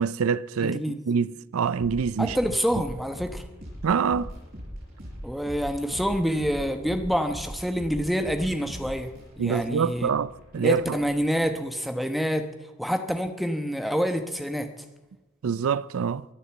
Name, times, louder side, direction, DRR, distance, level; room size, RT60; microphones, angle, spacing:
voice 1, 0.0-2.4 3.8-4.3 9.4-11.0 15.4-16.3, right 6 dB, 80° right, 0.4 m, -25 dB
voice 2, 0.6-1.0 2.2-3.4 5.2-10.1 10.5-12.5 12.8-14.7, equal, ahead, 1.0 m, -27 dB
sound 1, 1.8-11.4, equal, 40° right, 6.5 m, -41 dB
23.0 x 8.2 x 7.1 m
head